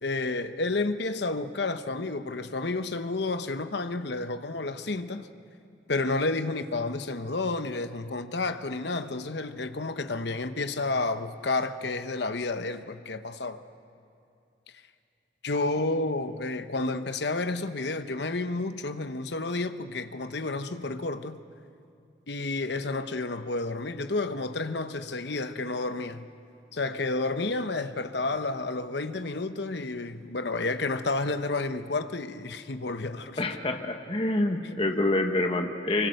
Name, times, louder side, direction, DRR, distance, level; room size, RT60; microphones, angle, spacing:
voice 1, 0.0-5.3 5.9-13.6 15.4-21.4 22.3-26.3 26.7-33.4, left 3 dB, 65° left, 1.0 m, -30 dB
voice 2, 33.4-36.1, left 2 dB, 30° left, 1.2 m, -27 dB
24.5 x 24.0 x 6.6 m
head